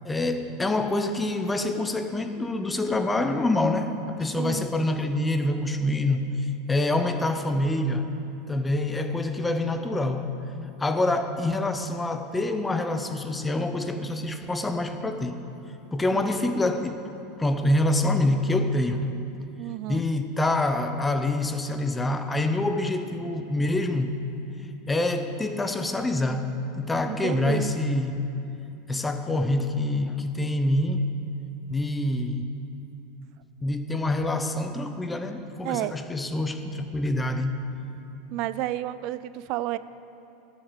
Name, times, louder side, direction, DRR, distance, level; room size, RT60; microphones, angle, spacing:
voice 1, 0.0-8.1 8.5-10.4 10.8-15.4 15.9-17.1 17.4-19.1 19.9-24.1 24.9-28.3 28.9-31.0 31.7-32.5 33.6-37.6, left 2 dB, 10° left, 7 dB, 0.7 m, -26 dB
voice 2, 4.4-4.7 16.1-16.3 19.6-20.0 27.1-27.7 35.6-35.9 38.3-39.8, right 15 dB, 55° right, 15 dB, 0.4 m, -31 dB
12.5 x 7.3 x 7.3 m, 2.8 s
supercardioid pair, 130°, 0 cm